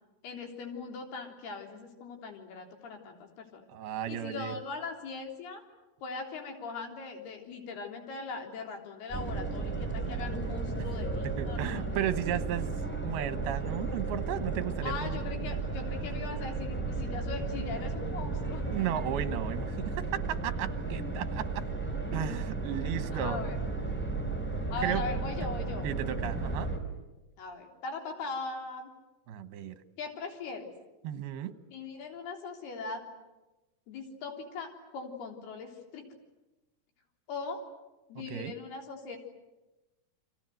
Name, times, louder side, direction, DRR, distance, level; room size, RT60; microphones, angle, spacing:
voice 1, 0.2-3.6 4.1-5.6 6.0-12.0 14.8-18.6 23.1-23.6 24.7-25.9 27.4-28.9 30.0-30.7 31.7-33.0 33.9-36.0 37.3-37.6 38.1-39.2, left 4 dB, 85° left, 3 dB, 5.6 m, -40 dB
voice 2, 3.7-4.5 11.4-12.7 13.0-15.2 18.7-21.6 22.1-23.4 24.8-25.0 25.8-26.7 29.3-29.7 31.0-31.5 38.3-38.5, right 10 dB, 80° right, 11 dB, 3.3 m, -34 dB
sound 1, 9.1-26.8, right 3 dB, 5° left, 4.0 m, -34 dB
29.5 x 25.5 x 7.9 m, 1.0 s
omnidirectional pair, 4.4 m